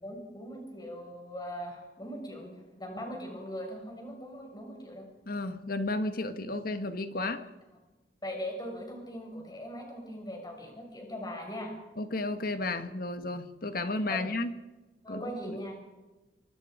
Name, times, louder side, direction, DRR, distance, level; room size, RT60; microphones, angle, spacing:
voice 1, 0.0-5.0 8.2-11.7 14.1-14.2 15.0-15.7, equal, 20° left, 1 dB, 6.4 m, -40 dB
voice 2, 5.2-7.4 12.0-14.5 15.1-15.6, left 2 dB, 55° left, 9 dB, 1.7 m, -33 dB
25.0 x 24.5 x 5.1 m, 1.1 s
head